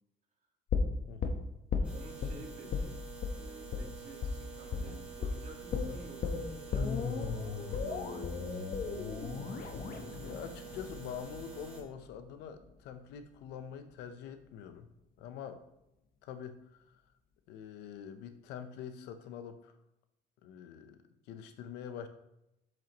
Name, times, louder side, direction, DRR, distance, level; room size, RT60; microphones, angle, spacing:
sound 1, 0.7-2.3 2.7-2.9 3.2-3.4 3.7-3.9 4.2-4.4 4.7-4.9 5.2-5.4 5.7-11.7 12.0-12.1, left 5 dB, 60° left, 1.1 m, -35 dB
voice 1, 1.1-1.4 1.8-1.9 10.2-14.9 15.2-15.6 16.2-16.8 17.5-19.7 20.4-22.1, left 8 dB, 90° left, 9 dB, 0.8 m, -45 dB
sound 2, 1.8-11.8, right 5 dB, 5° right, 2.3 m, -48 dB
voice 2, 1.9-3.0 3.3-9.2, right 2 dB, 45° right, -1 dB, 2.4 m, -53 dB
7.7 x 7.5 x 3.0 m, 0.88 s
cardioid pair, 110°, 17 cm